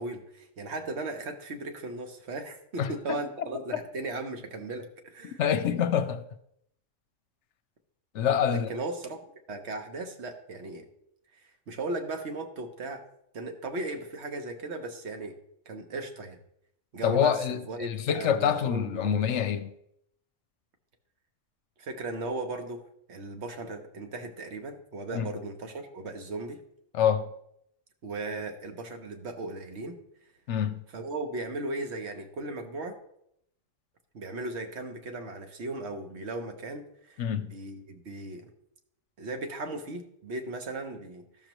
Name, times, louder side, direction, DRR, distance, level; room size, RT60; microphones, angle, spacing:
voice 1, 0.0-5.4 8.5-9.2 9.5-10.9 11.7-13.0 13.3-15.4 15.7-16.4 16.9-19.3 21.8-26.6 28.0-30.0 30.9-33.0 34.1-37.2 37.5-38.5 39.2-41.5, right 2 dB, 60° right, 1.2 m, -37 dB
voice 2, 2.8-3.2 3.7-3.8 5.2-6.2 8.1-8.7 17.0-19.7 25.1-25.3 26.9-27.3 30.5-30.8 37.2-37.5, left 8 dB, 70° left, 0.9 m, -26 dB
13.0 x 6.5 x 3.0 m
omnidirectional pair, 1.3 m